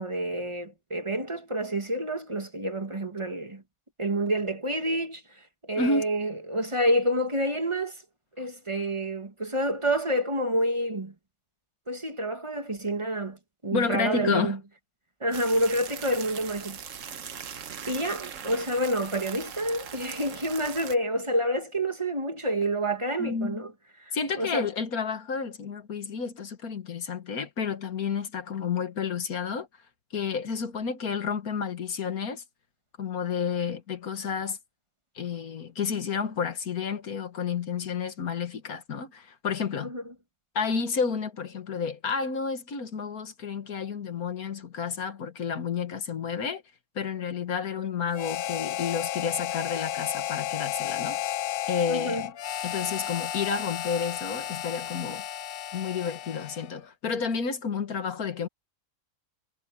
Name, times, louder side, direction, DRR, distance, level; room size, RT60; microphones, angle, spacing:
voice 1, 0.0-3.6 4.0-5.2 5.7-8.0 8.4-11.1 11.9-13.4 13.6-14.6 15.2-16.8 17.9-23.7 24.3-24.7 39.8-40.0 51.9-52.2, right 1 dB, 20° right, 1.9 m, -28 dB
voice 2, 5.8-6.1 13.7-14.6 23.2-23.7 24.1-29.7 30.1-32.4 33.0-34.6 35.2-39.9 40.6-46.6 47.0-51.2 51.7-52.3 52.6-55.2 55.7-58.5, left 6 dB, 85° left, 2.0 m, -30 dB
sound 1, 15.3-21.0, right 7 dB, 65° right, 1.4 m, -40 dB
Harmonica, 48.1-56.8, left 11 dB, 70° left, 0.5 m, -33 dB
omnidirectional pair, 1.5 m